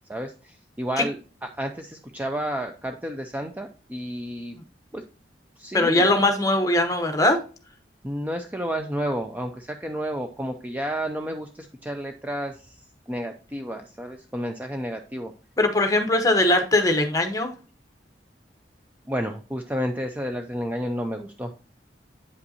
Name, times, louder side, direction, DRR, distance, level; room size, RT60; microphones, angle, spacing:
voice 1, 0.1-4.5 4.9-5.0 5.6-6.2 8.0-12.8 13.1-15.3 19.1-21.5, equal, 10° right, 5 dB, 0.4 m, -31 dB
voice 2, 5.7-7.4 15.6-17.5, left 1 dB, 20° left, 6 dB, 0.9 m, -20 dB
8.2 x 5.3 x 2.7 m, 0.36 s
head